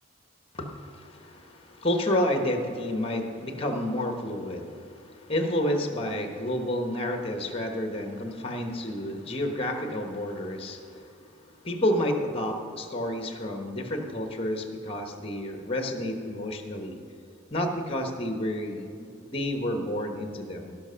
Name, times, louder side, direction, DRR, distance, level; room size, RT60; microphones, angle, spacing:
voice 1, 0.5-11.1 11.6-17.0 17.5-20.8, left 1 dB, 30° left, 4 dB, 1.2 m, -30 dB
17.5 x 5.9 x 5.7 m, 2.6 s
head